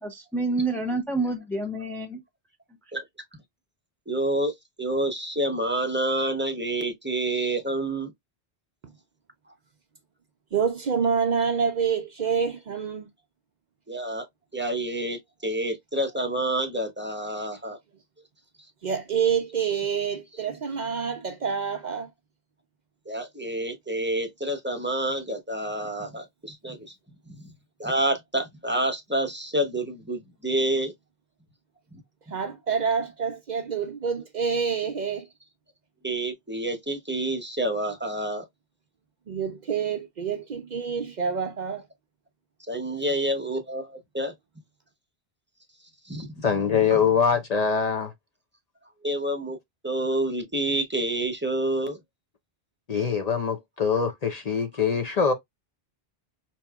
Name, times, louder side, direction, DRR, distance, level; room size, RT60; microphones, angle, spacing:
voice 1, 0.0-2.2 2.9-3.0, right 3 dB, 5° left, 0.3 m, -28 dB
voice 2, 4.1-8.1 13.9-14.2 14.5-17.8 23.1-26.8 27.3-27.5 27.8-30.9 36.0-38.4 42.7-44.3 46.1-46.3 49.0-49.6 49.8-52.0, right 1 dB, 10° right, 0.7 m, -28 dB
voice 3, 10.5-13.1 18.8-22.1 32.3-35.3 39.3-41.8 42.9-43.0, right 6 dB, 55° right, 0.6 m, -27 dB
voice 4, 46.4-48.1 52.9-55.3, left 6 dB, 45° left, 0.6 m, -23 dB
4.4 x 2.8 x 2.2 m
omnidirectional pair, 1.0 m